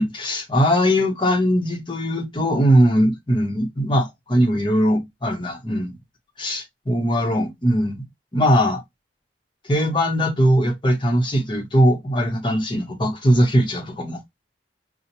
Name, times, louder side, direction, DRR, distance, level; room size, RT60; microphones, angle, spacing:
voice 1, 0.0-5.9 6.4-8.0 8.3-8.8 9.7-14.2, equal, 25° left, 0.9 m, -20 dB
5.5 x 2.1 x 2.9 m
head